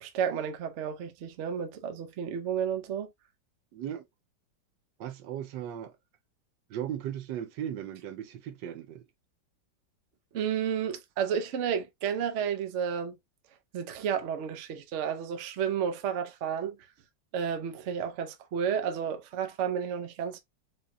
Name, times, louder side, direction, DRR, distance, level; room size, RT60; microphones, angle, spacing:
voice 1, 0.0-3.1 10.3-13.2 13.7-16.8 17.3-20.4, right 8 dB, 60° right, 0.8 m, -31 dB
voice 2, 3.7-4.0 5.0-5.9 6.7-9.0, right 10 dB, 75° right, 1.3 m, -37 dB
4.9 x 2.3 x 2.6 m
omnidirectional pair, 2.0 m